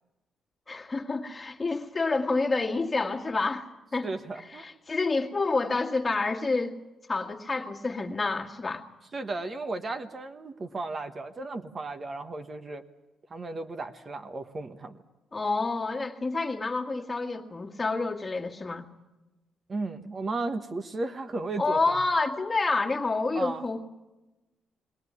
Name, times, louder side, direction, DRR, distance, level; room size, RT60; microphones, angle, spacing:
voice 1, 0.7-4.1 4.5-6.8 7.1-8.8 15.3-18.8 21.6-23.8, left 3 dB, 25° left, 1 dB, 1.9 m, -28 dB
voice 2, 4.0-4.8 9.1-12.8 13.3-15.0 19.7-22.0 23.3-23.6, right 3 dB, 35° right, 7 dB, 1.1 m, -35 dB
21.0 x 17.5 x 9.6 m, 1.1 s
cardioid pair, 90°, 0 cm